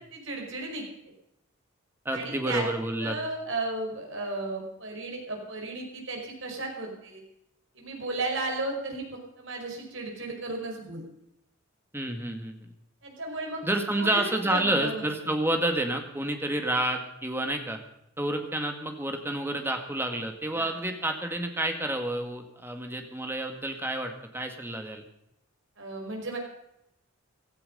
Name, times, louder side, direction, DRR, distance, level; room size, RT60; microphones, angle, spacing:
voice 1, 0.1-0.8 2.1-2.7 3.0-7.2 7.7-11.0 13.0-13.6 13.9-15.0 20.5-20.7 25.8-26.4, right 2 dB, 60° right, 1 dB, 5.1 m, -34 dB
voice 2, 2.1-3.2 11.9-12.7 13.6-17.8 18.2-25.0, right 1 dB, 10° right, 5 dB, 2.0 m, -29 dB
16.5 x 13.5 x 5.4 m, 0.81 s
head